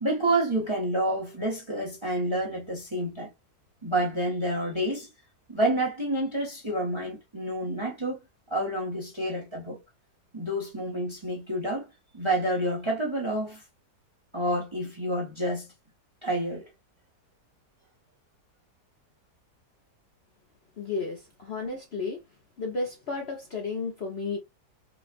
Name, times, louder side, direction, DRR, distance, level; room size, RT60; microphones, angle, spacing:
voice 1, 0.0-3.3 3.8-5.1 5.5-8.2 8.5-9.8 10.3-11.8 12.1-13.6 14.3-15.7 16.2-16.7, right 1 dB, 20° right, 1.0 m, -28 dB
voice 2, 20.8-22.2 22.6-24.4, left 4 dB, 45° left, 0.9 m, -33 dB
5.1 x 2.4 x 2.4 m
omnidirectional pair, 1.9 m